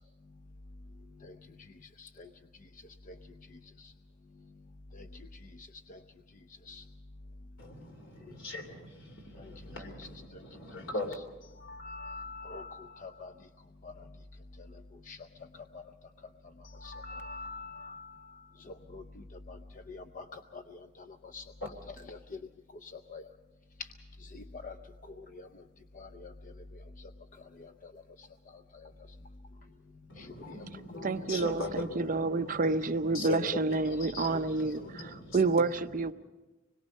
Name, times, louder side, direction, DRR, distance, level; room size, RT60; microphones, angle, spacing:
voice 1, 2.0-2.3 3.1-3.2 3.8-3.9 4.9-5.2 5.6-6.0 6.7-6.8 9.4-9.5 11.6-13.3 13.8-13.9 15.1-15.2 15.7-15.8 16.7-19.6 19.9-21.1 21.3-21.4 22.1-22.4 22.8-23.3 24.2-24.7 25.2-25.5 25.9-26.3 27.6-27.9 28.2-28.3 28.8-28.9 30.2-30.6, left 3 dB, 40° left, 8 dB, 0.6 m, -45 dB
voice 2, 7.6-11.1 30.1-32.8 33.0-35.4, left 2 dB, 80° left, 5 dB, 3.1 m, -40 dB
voice 3, 31.0-36.1, right 3 dB, 45° right, 10 dB, 0.7 m, -29 dB
25.5 x 21.5 x 5.4 m, 1.1 s
head